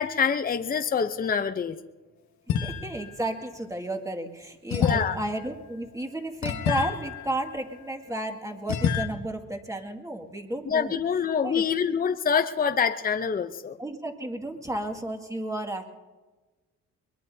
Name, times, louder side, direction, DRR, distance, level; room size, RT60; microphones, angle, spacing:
voice 1, 0.0-1.8 4.7-5.2 10.6-13.8, left 6 dB, 30° left, 8 dB, 0.7 m, -26 dB
sound 1, 2.5-3.2 4.7-8.1 8.7-9.1, left 8 dB, 70° left, 1.2 m, -30 dB
voice 2, 2.5-11.0 11.4-11.6 13.8-15.9, right 1 dB, 10° right, 3 dB, 2.1 m, -33 dB
22.5 x 22.0 x 2.8 m, 1.2 s
cardioid pair, 90°, 30 cm